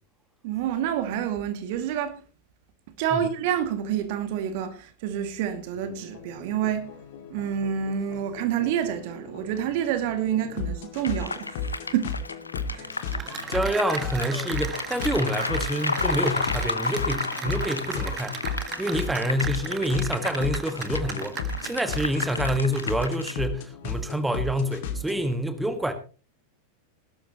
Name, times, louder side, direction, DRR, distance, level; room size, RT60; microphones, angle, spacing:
voice 1, 0.4-2.2 3.0-7.0 7.3-11.7 11.9-12.2 12.7-12.9, right 9 dB, 50° right, 2.1 m, -28 dB
sound 1, 5.7-25.3, left 4 dB, 55° left, 2.3 m, -35 dB
sound 2, 11.0-23.3, left 3 dB, 80° left, 1.0 m, -33 dB
Cheering / Applause, 12.9-23.3, right 8 dB, 25° right, 1.6 m, -37 dB
voice 2, 13.5-18.4 18.8-25.9, equal, 5° right, 1.6 m, -27 dB
19.5 x 12.5 x 3.0 m
figure-of-eight pair, 90°, 0 cm